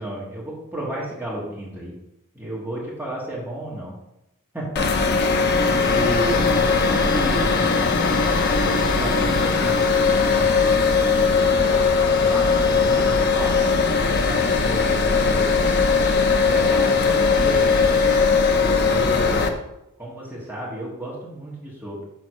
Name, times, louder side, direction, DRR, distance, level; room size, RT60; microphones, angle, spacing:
voice 1, 0.0-1.9 2.3-4.0 4.5-5.0 5.8-6.4 6.7-7.6 8.5-10.3 10.9-15.7 16.5-17.9 18.6-19.5 20.0-22.0, right 1 dB, 10° right, -5 dB, 1.7 m, -32 dB
sound 1, 4.8-19.5, left 4 dB, 50° left, 0.6 m, -19 dB
6.3 x 4.1 x 6.1 m, 0.86 s
head